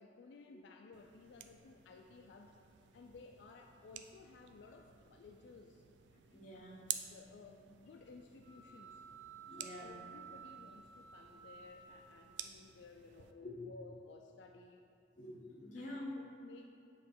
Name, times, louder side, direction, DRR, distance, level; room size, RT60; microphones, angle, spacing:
voice 1, 0.0-2.6 2.9-5.8 6.9-9.0 9.5-14.8 15.7-16.7, left 4 dB, 80° left, 3 dB, 0.3 m, -57 dB
sound 1, 0.9-13.3, right 10 dB, 80° right, 0.4 m, -51 dB
voice 2, 6.3-6.9 9.4-10.1 13.4-13.6 15.2-16.2, left 1 dB, 45° left, -3 dB, 0.9 m, -47 dB
sound 2, 8.4-12.5, right 7 dB, 20° right, 1.1 m, -54 dB
7.8 x 3.1 x 4.6 m, 2.5 s
head